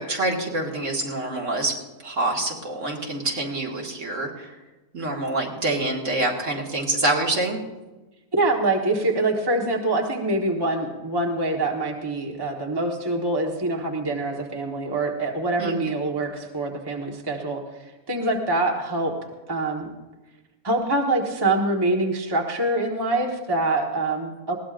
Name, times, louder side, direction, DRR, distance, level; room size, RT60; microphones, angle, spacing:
voice 1, 0.0-1.7 2.0-4.5 4.9-7.6 15.6-15.8, right 2 dB, 55° right, -1 dB, 2.3 m, -26 dB
voice 2, 8.3-17.6 18.1-19.1 19.5-19.9 20.6-24.6, right 2 dB, 15° right, 0 dB, 1.3 m, -25 dB
21.0 x 17.0 x 2.6 m, 1.1 s
omnidirectional pair, 1.6 m